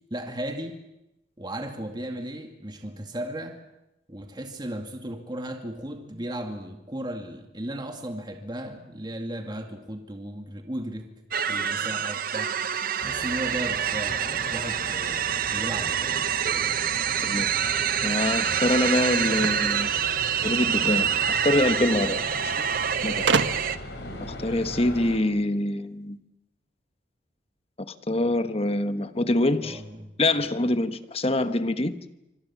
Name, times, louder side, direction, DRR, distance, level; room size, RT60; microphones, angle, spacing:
voice 1, 0.1-0.8 1.4-3.6 4.1-11.0 11.5-12.5 13.0-16.4 29.6-30.2, right 1 dB, 25° right, 4 dB, 2.2 m, -35 dB
sound 1, 11.3-23.8, right 8 dB, 50° right, 1.0 m, -26 dB
sound 2, 13.0-25.2, left 1 dB, 65° left, 4.8 m, -39 dB
voice 2, 17.2-19.9 20.4-22.5 23.0-23.3 24.2-26.2 27.9-29.8 30.2-31.9, left 1 dB, 35° left, 10 dB, 1.2 m, -25 dB
sound 3, 19.3-20.8 21.9-22.0 22.2-22.3 23.3-23.9, right 4 dB, 85° right, 1.4 m, -27 dB
26.5 x 25.0 x 7.3 m, 0.92 s
head